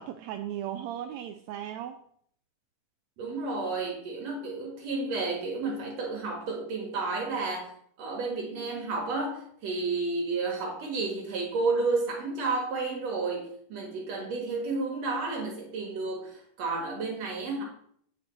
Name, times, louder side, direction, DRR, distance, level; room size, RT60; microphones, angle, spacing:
voice 1, 0.0-2.0, right 11 dB, 80° right, 1.6 m, -36 dB
voice 2, 3.2-7.7 8.0-17.7, right 3 dB, 60° right, 2.5 m, -31 dB
8.5 x 6.5 x 4.5 m
omnidirectional pair, 3.7 m